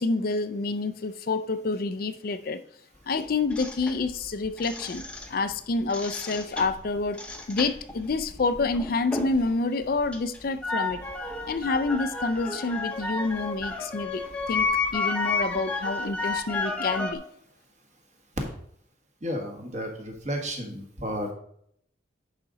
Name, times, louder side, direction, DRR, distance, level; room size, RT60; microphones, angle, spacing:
voice 1, 0.0-2.6 3.1-5.0 5.3-7.2 7.5-11.0 11.5-17.2, left 3 dB, 50° left, 0.4 m, -28 dB
sound 1, 3.5-5.5 5.8-9.5 9.8-17.1, left 3 dB, 5° left, 0.8 m, -31 dB
voice 2, 19.2-21.3, equal, 40° right, 1.6 m, -32 dB
10.5 x 5.1 x 4.0 m
head